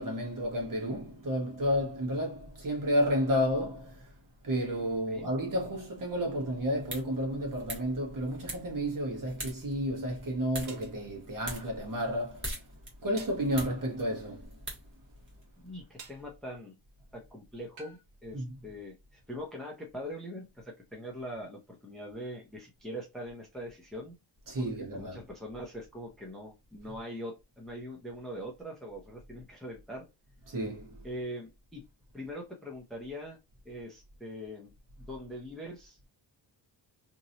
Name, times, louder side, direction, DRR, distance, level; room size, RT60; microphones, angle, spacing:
voice 1, 0.0-4.1 4.4-12.6 13.0-14.6 18.3-18.5 24.5-25.2 30.5-31.1, equal, 45° right, 1.3 m, -31 dB
sound 1, 6.6-15.4, right 1 dB, 25° right, 1.3 m, -44 dB
sound 2, 10.7-11.0 13.2-13.5 16.0-16.3 17.8-18.0, right 5 dB, 80° right, 1.0 m, -49 dB
voice 2, 15.6-16.7 17.1-24.2 24.6-30.1 31.0-31.8 32.1-33.4 33.6-34.7 35.0-36.1, equal, ahead, 0.6 m, -42 dB
2.9 x 2.7 x 2.7 m
wide cardioid pair, 155°, 46 cm